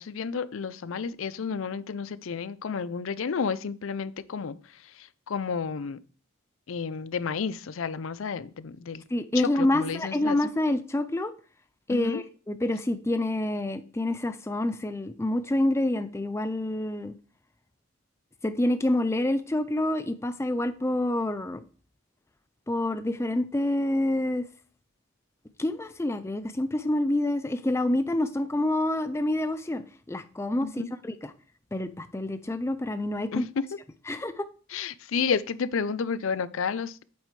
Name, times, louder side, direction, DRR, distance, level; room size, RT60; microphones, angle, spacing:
voice 1, 0.0-6.0 6.7-9.0 9.3-10.4 11.9-12.2 30.6-30.9 33.3-33.6 34.7-37.0, left 6 dB, 75° left, 17 dB, 0.5 m, -31 dB
voice 2, 9.1-11.3 11.9-17.1 18.4-21.6 22.7-24.5 25.6-31.3 31.7-33.4 34.1-34.4, left 1 dB, 10° left, 11 dB, 0.4 m, -27 dB
8.5 x 7.4 x 3.2 m, 0.39 s
head